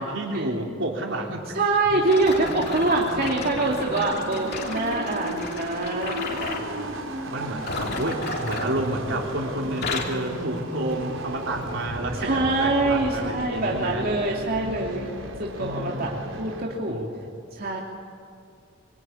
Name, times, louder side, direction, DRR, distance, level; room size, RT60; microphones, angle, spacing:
voice 1, 0.0-1.6 6.6-7.0 7.3-14.1 15.6-16.2 16.9-17.2, right 1 dB, 65° right, 1 dB, 3.9 m, -30 dB
voice 2, 1.5-6.6 12.1-15.1 15.4-16.1 16.4-17.0 17.5-17.8, right 2 dB, 50° right, -2 dB, 2.7 m, -25 dB
sound 1, 1.8-16.6, right 1 dB, 90° right, 3.8 m, -35 dB
sound 2, 2.0-6.7 7.5-9.3 9.6-10.3 10.9-11.1 11.7-11.8, left 3 dB, 55° left, 3.2 m, -34 dB
24.5 x 24.5 x 9.9 m, 2.4 s
head